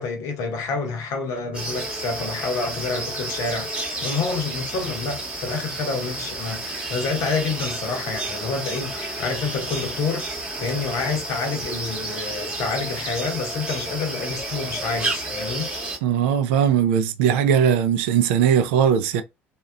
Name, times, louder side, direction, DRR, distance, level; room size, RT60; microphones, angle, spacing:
voice 1, 0.0-15.7, left 4 dB, 55° left, 0.8 m, -28 dB
sound 1, 1.5-16.0, right 2 dB, 15° right, 0.9 m, -31 dB
voice 2, 16.0-19.2, right 8 dB, 65° right, 0.3 m, -19 dB
2.8 x 2.3 x 2.2 m
figure-of-eight pair, 55°, 7 cm